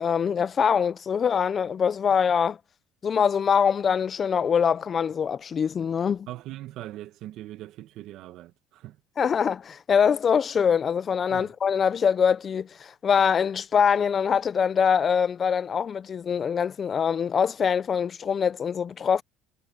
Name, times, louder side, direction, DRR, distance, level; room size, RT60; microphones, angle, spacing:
voice 1, 0.0-2.6 3.0-6.3 9.2-19.2, left 7 dB, 35° left, 0.5 m, -23 dB
voice 2, 6.3-9.0 11.3-11.5, right 14 dB, 65° right, 1.2 m, -40 dB
cardioid pair, 115°, 0 cm